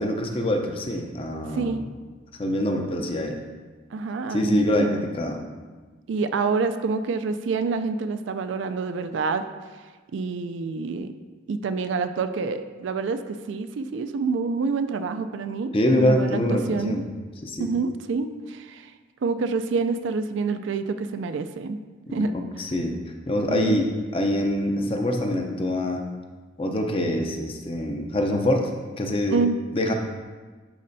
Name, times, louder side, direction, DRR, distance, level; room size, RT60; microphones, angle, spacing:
voice 1, 0.0-1.8 2.4-3.4 4.3-5.4 15.7-17.2 17.4-17.7 22.1-23.0 23.3-26.0 26.6-28.7 29.0-29.4 29.7-29.9, left 1 dB, 30° left, 3 dB, 0.6 m, -25 dB
voice 2, 3.9-5.0 6.1-9.5 10.1-11.1 11.5-17.0 17.6-18.9 19.2-21.8 22.1-22.4 23.5-23.8 29.3-29.6, right 4 dB, 70° right, 9 dB, 0.3 m, -27 dB
10.5 x 4.2 x 2.6 m, 1.4 s
head